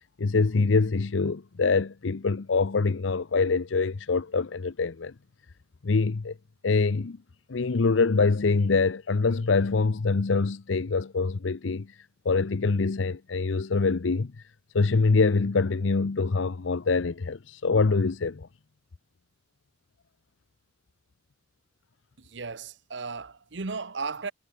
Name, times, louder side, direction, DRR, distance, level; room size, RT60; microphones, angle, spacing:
voice 1, 0.2-5.1 5.8-6.3 6.6-7.2 7.5-12.0 12.2-14.4 14.7-18.5, left 4 dB, 85° left, 0.7 m, -24 dB
voice 2, 22.2-24.3, right 4 dB, 65° right, 1.0 m, -35 dB
head